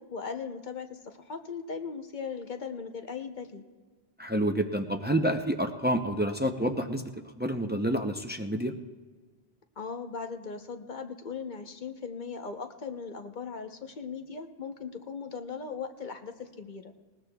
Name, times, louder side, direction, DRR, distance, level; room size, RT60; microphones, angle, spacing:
voice 1, 0.0-3.6 9.8-16.9, left 5 dB, 50° left, 6 dB, 0.9 m, -38 dB
voice 2, 4.2-7.1 7.4-8.7, right 1 dB, 15° right, 5 dB, 0.3 m, -28 dB
20.0 x 18.5 x 2.3 m, 1.4 s
omnidirectional pair, 1.1 m